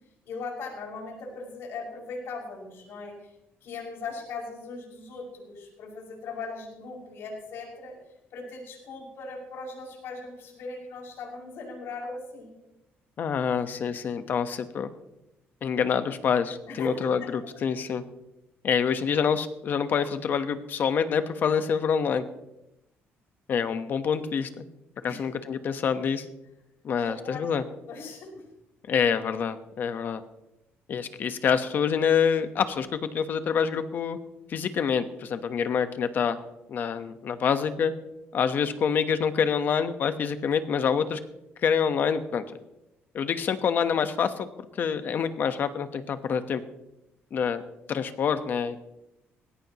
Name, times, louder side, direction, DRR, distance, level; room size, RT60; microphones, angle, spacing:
voice 1, 0.2-3.3 3.6-8.0 8.3-12.5 16.7-17.3 25.0-25.3 26.9-27.4 27.9-28.5, left 3 dB, 70° left, -2 dB, 6.0 m, -39 dB
voice 2, 13.2-14.9 15.6-18.0 18.6-22.2 23.5-24.6 25.0-26.2 26.8-27.6 28.9-30.2 30.9-34.2 34.5-36.4 36.7-37.9 38.3-41.2 41.6-42.4 43.1-44.5 44.7-46.6 47.3-47.6 47.9-48.8, left 7 dB, 45° left, 10 dB, 1.1 m, -26 dB
20.0 x 17.0 x 3.0 m, 0.89 s
cardioid pair, 155°, 4 cm